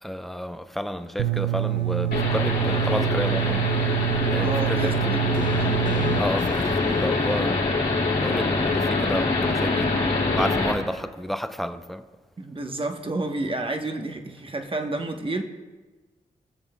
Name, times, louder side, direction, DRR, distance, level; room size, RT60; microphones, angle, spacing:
voice 1, 0.0-3.7 4.3-5.4 6.2-7.8 8.1-10.0 10.3-12.0, equal, ahead, 0.6 m, -31 dB
sound 1, 1.2-6.2, right 14 dB, 85° right, 0.4 m, -26 dB
sound 2, 2.1-10.7, left 3 dB, 70° left, 2.6 m, -25 dB
voice 2, 4.4-5.8 12.4-15.4, right 2 dB, 30° right, 1.1 m, -30 dB
sound 3, 5.3-8.8, left 4 dB, 50° left, 0.7 m, -35 dB
18.5 x 7.1 x 2.3 m
supercardioid pair, 45°, 17 cm